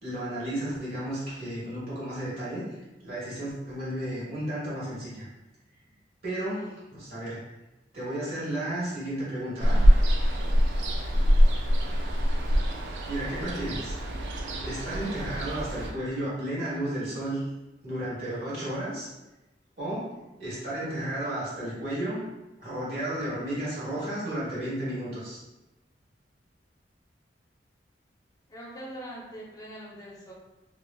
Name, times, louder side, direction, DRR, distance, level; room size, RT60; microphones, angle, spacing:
voice 1, 0.0-2.8 3.0-5.3 6.2-7.4 7.9-9.8 13.1-14.0 14.6-17.4 17.8-19.1 19.8-20.1 20.4-22.2 22.6-25.4, right 1 dB, 60° right, -7 dB, 1.2 m, -33 dB
voice 2, 6.4-6.8 10.8-11.3 28.5-30.3, right 1 dB, 20° left, -4 dB, 0.7 m, -43 dB
Ocean, 9.6-15.9, equal, 80° right, 0.4 m, -24 dB
2.9 x 2.4 x 2.2 m, 1.0 s
head